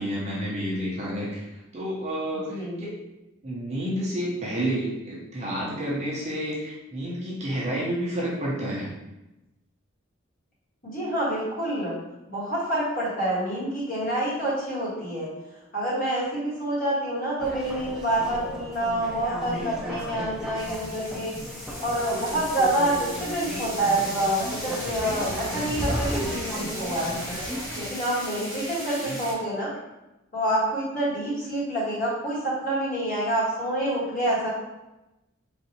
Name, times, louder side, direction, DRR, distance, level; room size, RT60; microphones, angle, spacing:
voice 1, 0.0-2.6 3.4-8.9 28.9-29.2, equal, 30° right, -6 dB, 0.7 m, -30 dB
voice 2, 2.5-2.8 10.8-11.9 12.3-15.3 15.7-21.3 21.8-27.2 27.7-29.7 30.3-34.5, right 1 dB, 40° left, -8 dB, 1.5 m, -27 dB
sound 1, 17.4-27.9, equal, ahead, 0.4 m, -34 dB
sound 2, 20.6-29.3, equal, 15° left, 1.0 m, -37 dB
4.1 x 2.6 x 2.8 m, 0.97 s
head